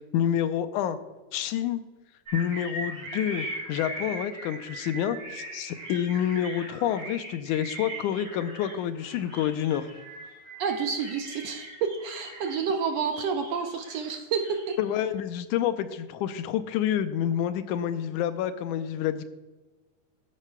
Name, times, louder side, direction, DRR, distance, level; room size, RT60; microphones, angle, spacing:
voice 1, 0.1-1.0 1.3-1.8 2.3-9.9 14.8-19.3, left 10 dB, 90° left, 10 dB, 2.1 m, -28 dB
sound 1, 2.3-12.8 13.1-14.8, right 1 dB, 35° right, 4.0 m, -40 dB
voice 2, 10.6-14.8, right 6 dB, 75° right, 5 dB, 1.6 m, -29 dB
14.5 x 10.5 x 2.3 m, 1.2 s
omnidirectional pair, 3.5 m